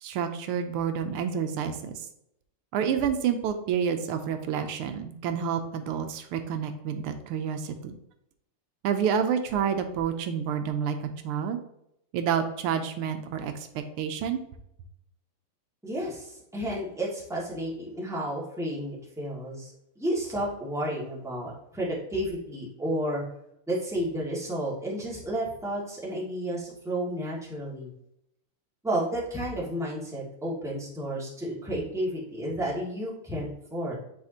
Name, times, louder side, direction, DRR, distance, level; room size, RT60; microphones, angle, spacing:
voice 1, 0.0-1.9 2.7-7.9 8.8-11.6 12.1-14.4, right 7 dB, 85° right, 7 dB, 1.6 m, -29 dB
voice 2, 15.8-23.2 23.7-27.9 28.8-33.9, right 1 dB, ahead, -6 dB, 1.6 m, -32 dB
8.9 x 4.2 x 2.8 m, 0.78 s
omnidirectional pair, 2.4 m